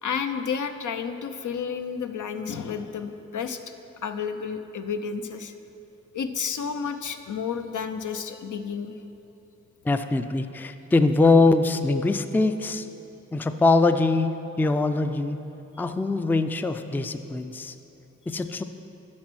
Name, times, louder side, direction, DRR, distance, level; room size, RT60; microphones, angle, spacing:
voice 1, 0.0-3.6 4.0-5.5 6.1-9.0, left 6 dB, 75° left, 8 dB, 0.5 m, -31 dB
voice 2, 9.8-12.9 13.3-14.3 14.6-15.4 15.8-17.7 18.3-18.6, left 3 dB, 5° left, 9 dB, 0.3 m, -22 dB
8.5 x 5.2 x 6.2 m, 3.0 s
cardioid pair, 50°, 31 cm